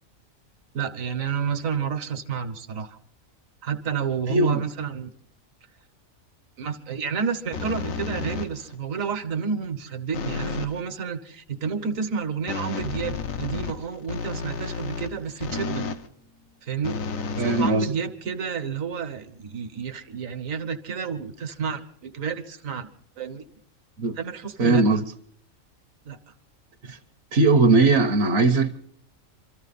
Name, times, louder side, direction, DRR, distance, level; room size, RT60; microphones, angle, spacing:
voice 1, 0.7-3.0 3.6-5.1 6.6-15.9 16.6-17.0 17.4-22.9 23.2-23.4 24.2-24.8 26.0-26.2, right 6 dB, 75° right, 1.5 m, -30 dB
voice 2, 4.3-4.6 17.4-17.9 24.0-24.2 24.6-25.0 26.8-27.0 27.3-28.8, right 3 dB, 55° right, 1.0 m, -19 dB
sound 1, 7.5-8.8 10.1-10.8 12.5-16.1 16.8-18.3, left 5 dB, 75° left, 1.3 m, -32 dB
25.5 x 13.5 x 4.1 m
omnidirectional pair, 1.4 m